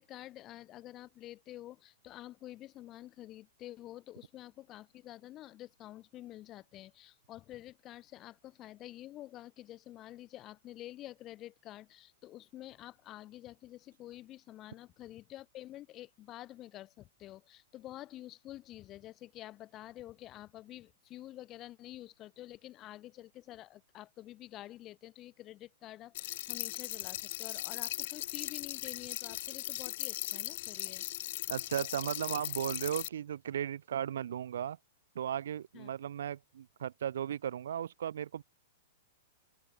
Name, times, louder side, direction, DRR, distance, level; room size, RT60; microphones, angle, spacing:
voice 1, 0.0-31.0 35.7-35.9, left 14 dB, 20° left, 1.3 m, -49 dB
Soda Bubble Loop, 26.1-33.1, left 16 dB, 45° left, 0.8 m, -38 dB
voice 2, 31.5-34.8 35.1-38.4, right 9 dB, 75° right, 0.6 m, -36 dB
open air
hypercardioid pair, 170°, 0 cm